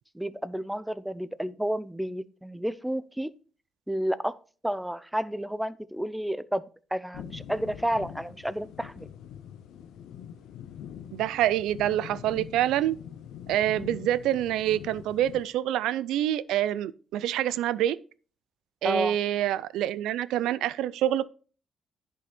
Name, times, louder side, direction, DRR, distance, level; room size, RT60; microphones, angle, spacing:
voice 1, 0.1-3.3 3.9-4.4 4.6-9.1 18.8-19.2, equal, 5° right, 0.6 m, -31 dB
sound 1, 7.1-15.5, left 10 dB, 85° left, 0.6 m, -44 dB
voice 2, 11.1-12.9 13.5-18.0 18.8-21.3, right 12 dB, 90° right, 0.4 m, -26 dB
10.5 x 5.6 x 4.2 m
cardioid pair, 90°, 0 cm